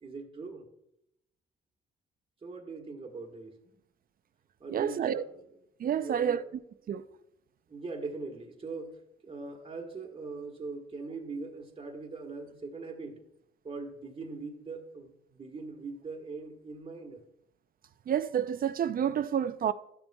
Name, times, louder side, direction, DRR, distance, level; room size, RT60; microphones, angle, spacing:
voice 1, 0.0-0.6 2.4-3.8 4.6-5.5 5.9-6.4 7.7-13.2 13.6-17.2, right 3 dB, 30° right, 1.3 m, -41 dB
voice 2, 4.7-5.2 5.8-6.4 6.9-7.0 18.1-19.7, right 9 dB, 45° right, 0.5 m, -29 dB
12.0 x 6.9 x 2.2 m
cardioid pair, 90°, 20 cm